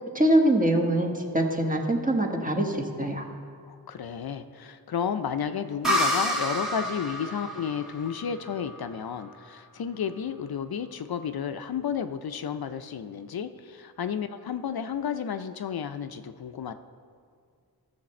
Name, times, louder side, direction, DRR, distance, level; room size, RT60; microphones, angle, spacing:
voice 1, 0.1-3.3, right 1 dB, 20° right, 2 dB, 1.3 m, -24 dB
voice 2, 3.7-16.7, left 7 dB, 70° left, 10 dB, 0.5 m, -32 dB
sound 1, 5.8-9.4, equal, ahead, 1.5 m, -29 dB
13.5 x 6.7 x 4.2 m, 2.2 s
wide cardioid pair, 45°, 38 cm